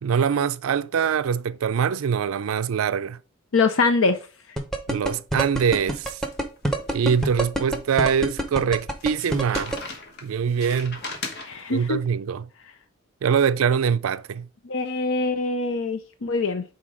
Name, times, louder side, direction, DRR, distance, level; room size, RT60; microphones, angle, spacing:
voice 1, 0.0-3.2 4.9-6.2 6.9-9.7 10.2-11.0 11.7-12.5 13.2-14.5, right 7 dB, 80° right, 0.4 m, -23 dB
voice 2, 3.5-4.2 11.4-12.0 14.6-16.6, left 3 dB, 70° left, 0.6 m, -23 dB
sound 1, 4.6-9.8, right 1 dB, ahead, 0.8 m, -25 dB
sound 2, 5.6-7.7 8.1-8.2 9.0-11.8, left 3 dB, 50° left, 1.2 m, -39 dB
5.8 x 4.1 x 4.8 m
head